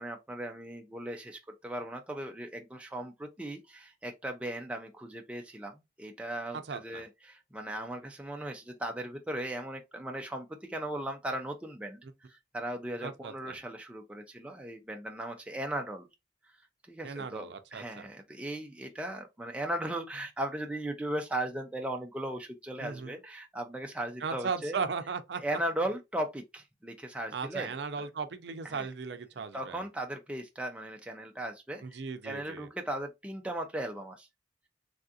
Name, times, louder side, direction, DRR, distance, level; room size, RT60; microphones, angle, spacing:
voice 1, 0.0-12.0 12.3-16.1 16.9-24.8 25.3-27.7 28.6-28.9 29.5-34.3, right 1 dB, 5° right, 0.3 m, -37 dB
voice 2, 6.5-7.0 12.0-12.1 13.0-13.6 17.0-18.1 22.8-23.1 24.2-25.4 27.3-29.8 31.8-32.7, right 5 dB, 70° right, 0.5 m, -37 dB
3.4 x 2.4 x 2.6 m
head